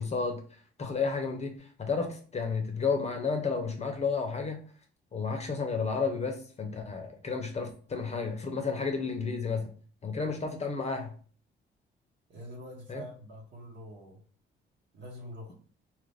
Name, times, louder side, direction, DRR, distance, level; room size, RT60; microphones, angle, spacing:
voice 1, 0.0-4.6 5.1-9.7 10.0-11.1 12.9-13.0, left 5 dB, 35° left, 0.7 m, -32 dB
voice 2, 12.3-14.2 14.9-15.5, equal, 60° right, 1.2 m, -45 dB
2.8 x 2.5 x 3.4 m
cardioid pair, 90°, 20 cm